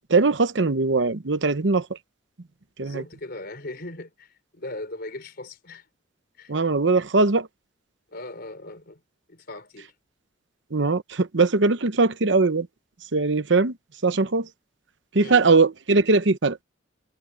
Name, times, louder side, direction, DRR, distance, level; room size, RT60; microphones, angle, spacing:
voice 1, 0.1-2.0 2.8-3.0 6.5-7.5 10.7-12.7 13.1-13.8 14.0-14.5 15.1-16.6, right 3 dB, 70° right, 0.9 m, -20 dB
voice 2, 2.8-5.9 6.4-6.5 8.1-9.0 9.3-9.9 15.1-15.6, left 2 dB, 55° left, 4.3 m, -39 dB
head